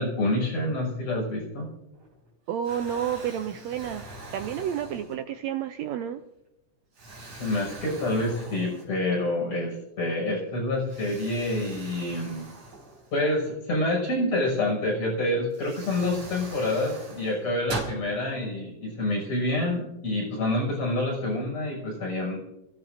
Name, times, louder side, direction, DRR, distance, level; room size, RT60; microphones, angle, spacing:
voice 1, 0.0-1.7 7.4-12.5 13.1-22.4, left 1 dB, 55° left, -2 dB, 7.3 m, -27 dB
Explosion, 1.9-2.3 2.6-5.5 6.1-6.2 6.9-9.2 9.6-9.7 10.9-13.5 15.0-15.1 15.5-18.0, right 2 dB, 55° right, 5.5 m, -41 dB
voice 2, 2.5-4.0 4.3-6.2, right 9 dB, 75° right, 8 dB, 1.7 m, -30 dB
29.5 x 16.0 x 2.6 m, 0.91 s
omnidirectional pair, 3.6 m